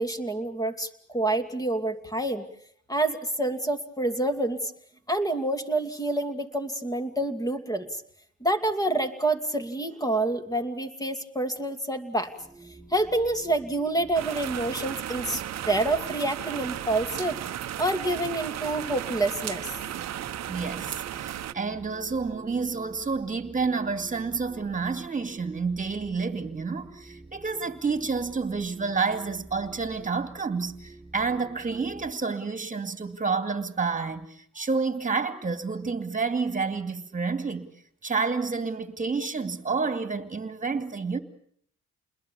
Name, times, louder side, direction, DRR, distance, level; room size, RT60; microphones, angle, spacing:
voice 1, 0.0-2.4 2.9-4.7 5.1-7.9 8.4-12.3 12.9-17.4 17.8-19.7, right 2 dB, 10° left, 2.6 m, -27 dB
sound 1, 12.4-32.1, right 2 dB, 5° right, 6.3 m, -49 dB
sound 2, 14.1-21.5, right 11 dB, 60° right, 0.9 m, -35 dB
voice 2, 20.5-37.7 38.0-41.2, right 4 dB, 25° right, 2.5 m, -29 dB
28.5 x 21.0 x 7.1 m
cardioid pair, 90°, 30 cm